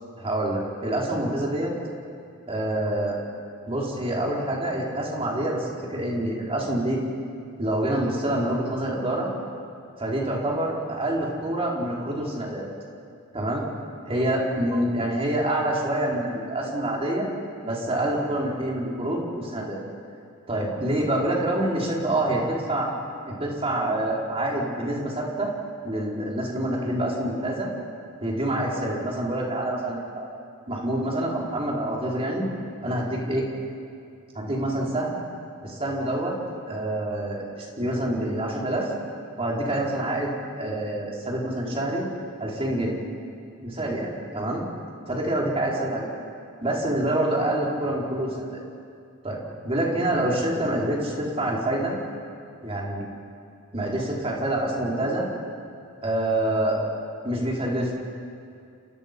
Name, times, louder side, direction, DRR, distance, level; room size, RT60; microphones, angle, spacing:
voice 1, 0.2-1.7 2.5-3.2 3.7-7.0 7.6-9.3 10.0-12.7 13.3-13.6 14.1-17.3 17.6-19.8 20.5-22.9 23.3-25.5 25.8-27.7 28.2-30.3 30.7-32.4 32.8-33.5 34.3-35.2 35.6-36.3 36.7-38.9 39.4-42.1 42.4-43.0 43.6-44.6 45.1-46.1 46.6-48.6 49.2-52.0 52.6-53.0 53.7-55.2 56.0-56.8 57.2-57.9, right 1 dB, 25° right, -3 dB, 4.8 m, -26 dB
29.5 x 29.5 x 5.5 m, 2.4 s
head